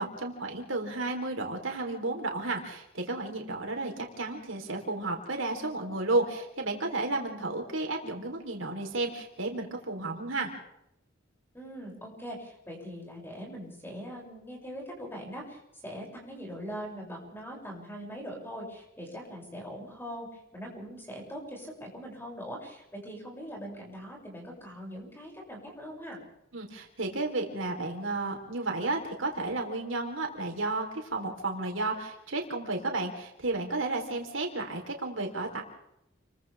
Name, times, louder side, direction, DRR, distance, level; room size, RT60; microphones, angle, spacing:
voice 1, 0.0-10.5 26.5-35.6, right 2 dB, 85° right, 2 dB, 4.3 m, -32 dB
voice 2, 11.5-26.2, equal, 10° left, -1 dB, 7.6 m, -42 dB
30.0 x 23.5 x 3.7 m, 0.79 s
head